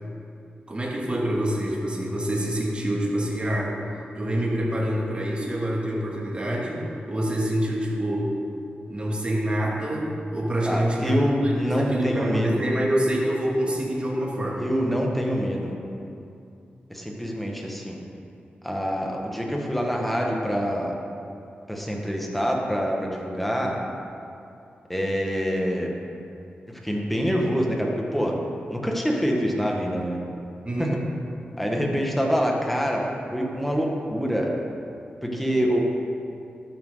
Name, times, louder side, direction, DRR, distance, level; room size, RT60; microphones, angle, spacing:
voice 1, 0.7-3.8 4.1-8.3 8.9-14.7 30.6-31.0, equal, 30° right, -3 dB, 2.5 m, -26 dB
voice 2, 10.6-12.7 14.6-15.7 16.9-18.0 18.6-20.9 21.7-23.8 24.9-25.9 26.8-28.4 28.7-30.2 30.8-31.0 31.6-34.5 35.3-35.8, equal, 5° left, -1 dB, 1.8 m, -25 dB
13.0 x 9.3 x 4.0 m, 2.6 s
cardioid pair, 70°, 4 cm